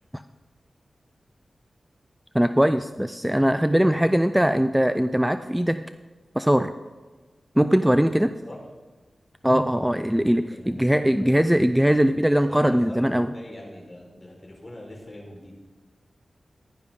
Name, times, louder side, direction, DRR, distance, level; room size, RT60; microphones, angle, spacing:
voice 1, 2.3-5.8 6.4-6.7 7.6-8.3 9.4-13.3, equal, 5° right, 10 dB, 0.4 m, -21 dB
voice 2, 10.3-11.5 12.5-15.5, left 1 dB, 35° left, -1 dB, 4.3 m, -43 dB
15.5 x 11.0 x 3.7 m, 1.3 s
cardioid pair, 60°, 0 cm